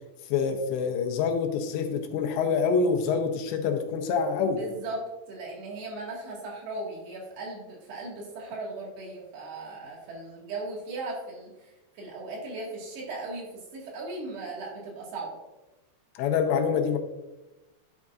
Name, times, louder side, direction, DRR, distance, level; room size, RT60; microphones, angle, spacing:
voice 1, 0.3-4.6 16.2-17.0, left 5 dB, 80° left, 4 dB, 3.0 m, -26 dB
voice 2, 4.6-15.4, right 2 dB, 70° right, -3 dB, 3.9 m, -37 dB
10.5 x 6.5 x 2.4 m, 1.1 s
omnidirectional pair, 5.1 m